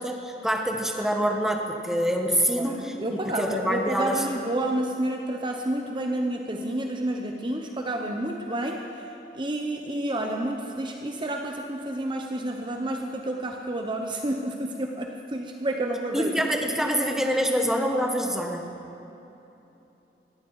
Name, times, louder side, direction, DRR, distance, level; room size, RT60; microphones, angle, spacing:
voice 1, 0.0-4.3 16.1-18.7, equal, 5° right, 2 dB, 1.3 m, -26 dB
voice 2, 2.6-8.8 9.3-16.3, right 1 dB, 30° right, 3 dB, 0.9 m, -30 dB
19.5 x 15.0 x 4.8 m, 3.0 s
head